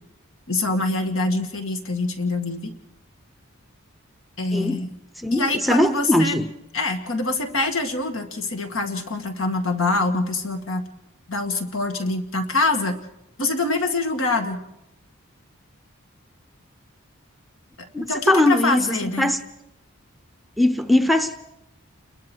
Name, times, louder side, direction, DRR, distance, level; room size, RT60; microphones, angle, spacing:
voice 1, 0.5-2.7 4.4-4.9 5.3-6.4 6.7-10.8 11.3-13.0 13.4-14.6 17.8-19.3, left 2 dB, 70° left, 2.2 m, -25 dB
voice 2, 4.5-4.8 5.2-6.5 17.9-19.4 20.6-21.4, left 1 dB, ahead, 0.7 m, -20 dB
29.5 x 21.5 x 4.6 m
head